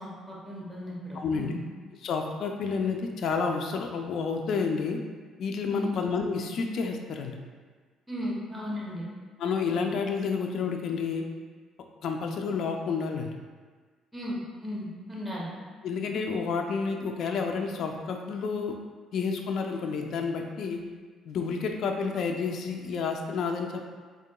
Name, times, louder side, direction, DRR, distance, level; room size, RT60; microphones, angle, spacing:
voice 1, 0.0-1.6 5.7-5.9 8.1-9.0 14.1-15.5, equal, 5° right, -6 dB, 0.9 m, -36 dB
voice 2, 1.1-1.5 2.0-5.0 5.4-7.4 9.4-11.2 12.0-13.3 15.8-18.8 19.1-20.8 21.3-23.9, left 5 dB, 65° left, 3 dB, 0.4 m, -30 dB
3.7 x 3.7 x 2.2 m, 1.5 s
cardioid pair, 105°, 0 cm